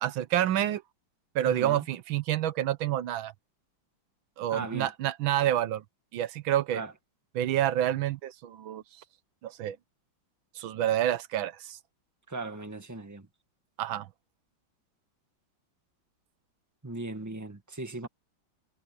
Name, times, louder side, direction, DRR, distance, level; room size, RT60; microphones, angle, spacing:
voice 1, 0.0-0.8 1.3-3.3 4.4-5.8 6.1-6.8 7.3-8.8 9.4-9.8 10.5-11.8 13.8-14.1, right 12 dB, 80° right, 1.6 m, -28 dB
voice 2, 1.4-1.8 4.5-4.9 6.7-6.9 12.3-13.3 16.8-18.1, right 2 dB, 10° right, 1.6 m, -38 dB
omnidirectional pair, 2.2 m